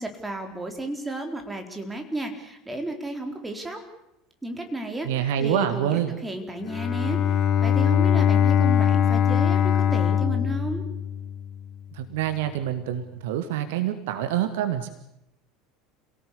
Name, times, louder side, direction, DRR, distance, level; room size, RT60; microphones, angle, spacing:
voice 1, 0.0-3.8 4.4-5.1 5.4-7.2 7.6-10.8, right 1 dB, 10° right, 4 dB, 4.3 m, -33 dB
voice 2, 5.0-6.2 11.9-14.9, right 10 dB, 60° right, 9 dB, 1.7 m, -26 dB
Bowed string instrument, 6.6-11.6, left 9 dB, 40° left, 1.4 m, -22 dB
28.0 x 18.0 x 8.6 m, 0.83 s
figure-of-eight pair, 70°, 0 cm